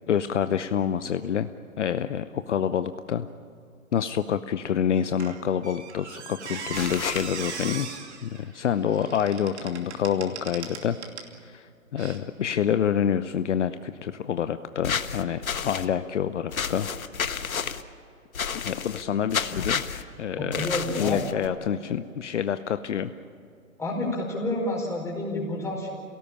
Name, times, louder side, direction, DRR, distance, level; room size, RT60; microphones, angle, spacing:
voice 1, 0.1-1.5 1.8-3.3 3.9-7.9 8.2-11.0 11.4-11.7 11.9-16.9 18.5-19.8 20.2-20.7 21.0-23.1, left 8 dB, 55° left, 11 dB, 0.8 m, -27 dB
Squeak, 5.2-11.4 12.0-12.2, right 6 dB, 55° right, 2.8 m, -39 dB
sound 1, 6.7-7.3 14.8-15.9 16.5-17.8 18.3-19.0 19.3-20.0 20.5-21.5, left 6 dB, 80° left, 1.4 m, -30 dB
voice 2, 20.4-21.2 23.8-25.9, left 2 dB, 5° left, -2 dB, 4.7 m, -29 dB
27.5 x 18.0 x 8.7 m, 2.5 s
hypercardioid pair, 145°, 41 cm